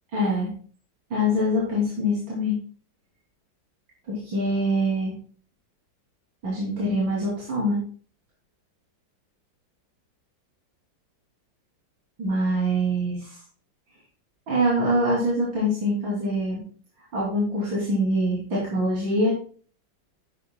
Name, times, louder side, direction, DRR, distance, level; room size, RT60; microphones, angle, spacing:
voice 1, 0.1-0.5 1.1-2.6 4.1-5.1 6.4-7.8 12.2-13.4 14.5-16.6 17.1-19.3, equal, 85° right, -7 dB, 3.9 m, -24 dB
11.0 x 9.0 x 2.3 m, 0.43 s
omnidirectional pair, 2.0 m